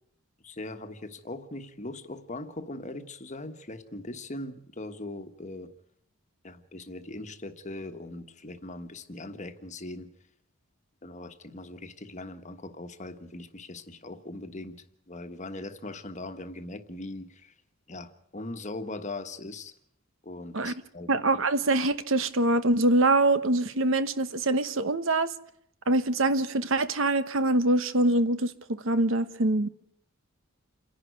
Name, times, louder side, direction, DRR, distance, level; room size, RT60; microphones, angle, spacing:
voice 1, 0.4-5.7 6.4-10.1 11.0-17.5 17.9-19.7 20.2-21.1, left 2 dB, 35° left, 1.4 m, -40 dB
voice 2, 21.1-25.3 25.9-29.7, right 2 dB, 60° right, 1.1 m, -24 dB
28.5 x 11.5 x 9.5 m
head